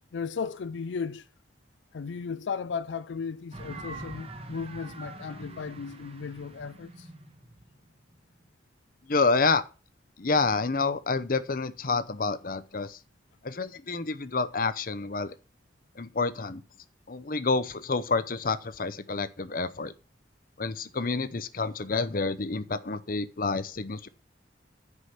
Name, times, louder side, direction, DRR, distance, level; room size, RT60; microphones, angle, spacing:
voice 1, 0.1-1.3 1.9-7.1, left 5 dB, 80° left, 0.4 m, -35 dB
sound 1, 3.5-8.4, right 2 dB, 35° right, 1.3 m, -44 dB
voice 2, 9.1-9.6 10.2-13.0 13.4-15.3 16.0-16.6 17.1-19.9 20.6-24.1, left 4 dB, 50° left, 0.7 m, -28 dB
9.9 x 4.9 x 6.5 m
head